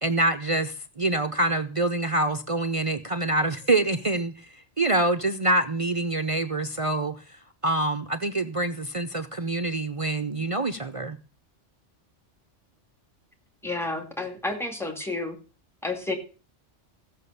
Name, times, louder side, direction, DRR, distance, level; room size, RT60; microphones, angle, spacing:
voice 1, 0.0-11.2, right 2 dB, 35° right, 0.6 m, -26 dB
voice 2, 13.6-15.4 15.8-16.1, left 2 dB, ahead, 2.3 m, -30 dB
15.0 x 6.5 x 6.8 m
omnidirectional pair, 1.2 m